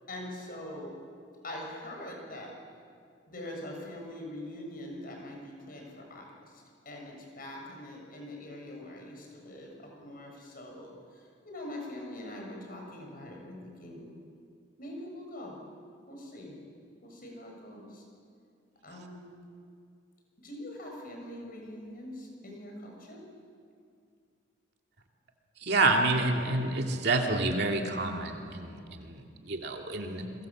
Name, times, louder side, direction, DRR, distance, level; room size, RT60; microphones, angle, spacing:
voice 1, 0.1-1.0 1.4-2.5 3.3-14.1 14.8-15.6 16.1-16.6 17.0-18.0 18.8-19.2 20.4-23.3 29.2-29.4, left 1 dB, 45° left, 0 dB, 7.0 m, -43 dB
voice 2, 25.6-29.2 29.5-30.3, right 2 dB, 60° right, 2 dB, 2.7 m, -28 dB
29.5 x 23.0 x 7.5 m, 2.3 s
head